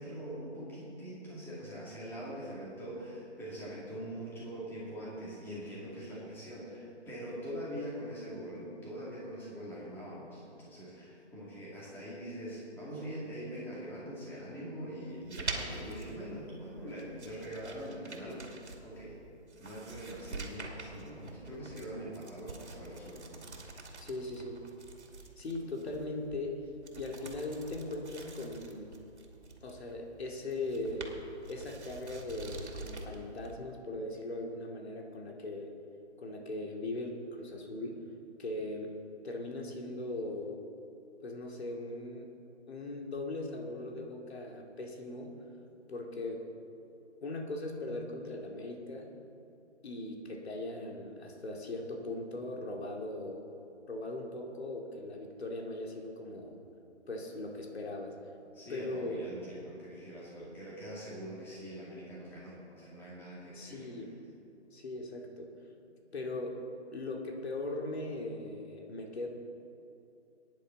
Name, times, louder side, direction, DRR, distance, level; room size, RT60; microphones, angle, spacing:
voice 1, 0.0-18.5 18.8-19.2 19.6-23.5 58.5-63.9, equal, 5° left, -6 dB, 2.2 m, -43 dB
sound 1, 15.1-33.6, right 3 dB, 70° right, 2.5 m, -46 dB
voice 2, 24.0-24.6 25.4-26.6 26.9-28.9 29.6-31.2 31.5-35.8 36.2-38.1 38.4-39.0 39.2-40.6 41.2-42.3 42.7-45.4 45.9-46.5 47.2-49.1 49.8-53.5 53.9-56.6 57.1-58.2 58.7-59.3 63.5-64.2 64.7-65.5 66.1-66.6 66.9-69.3, left 2 dB, 60° left, 1 dB, 2.5 m, -39 dB
20.0 x 10.5 x 4.0 m, 2.7 s
hypercardioid pair, 160°, 35 cm